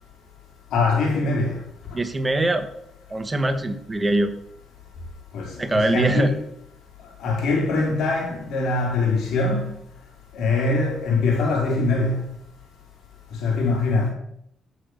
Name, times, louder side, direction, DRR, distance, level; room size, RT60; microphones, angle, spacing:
voice 1, 0.7-1.6 5.3-6.4 7.2-9.7 10.3-12.3 13.4-14.1, left 3 dB, 75° left, 4.2 m, -23 dB
voice 2, 1.9-2.7 3.1-4.3 5.6-6.3, right 1 dB, 20° right, 1.3 m, -22 dB
13.5 x 6.4 x 6.3 m
cardioid pair, 90°, 0 cm